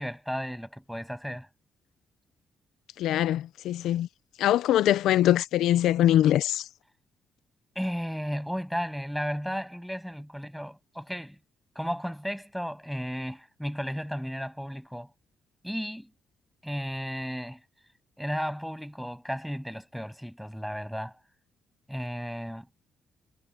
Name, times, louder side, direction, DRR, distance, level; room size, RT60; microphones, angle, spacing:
voice 1, 0.0-1.5 7.8-11.4 11.8-15.1 15.6-16.1 16.6-17.6 18.2-21.2 21.9-22.7, equal, ahead, 7.3 m, -34 dB
voice 2, 3.0-4.1 4.4-6.6, left 12 dB, 90° left, 0.6 m, -23 dB
cardioid pair, 120°, 0 cm